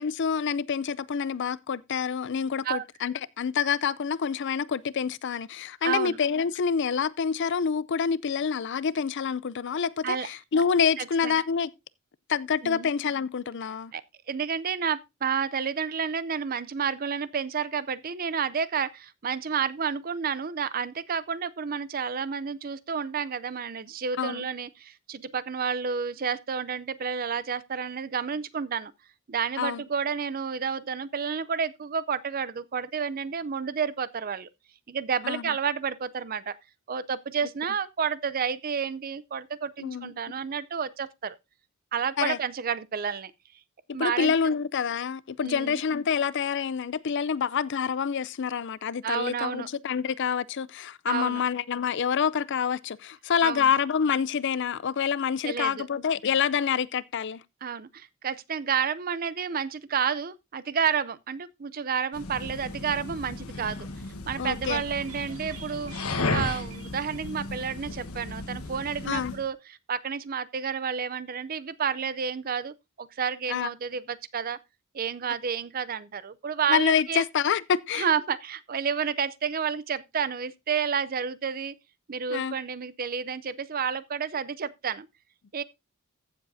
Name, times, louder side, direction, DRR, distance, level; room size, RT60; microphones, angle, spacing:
voice 1, 0.0-11.7 12.3-13.9 24.2-24.4 29.6-29.8 35.2-35.5 39.8-40.1 42.2-42.4 44.0-57.4 64.4-64.8 69.1-69.3 73.5-73.7 76.7-78.1 82.3-82.6, left 7 dB, 55° left, 0.4 m, -27 dB
voice 2, 5.8-6.2 10.0-10.3 11.0-11.4 12.6-12.9 13.9-14.0 14.3-28.9 29.3-34.5 34.9-36.6 36.9-41.4 41.9-43.3 43.9-44.3 45.4-45.8 49.0-49.7 51.1-51.4 53.4-53.7 55.4-55.9 57.6-63.9 64.3-65.9 66.3-74.6 74.9-77.2 77.9-81.7 82.1-85.1 85.5-85.6, right 6 dB, 40° right, 0.5 m, -30 dB
sound 1, 62.1-69.5, left 2 dB, 85° left, 1.3 m, -35 dB
sound 2, 64.6-68.1 68.4-68.5 68.8-68.9, right 5 dB, 85° right, 2.0 m, -48 dB
15.0 x 7.2 x 2.7 m
head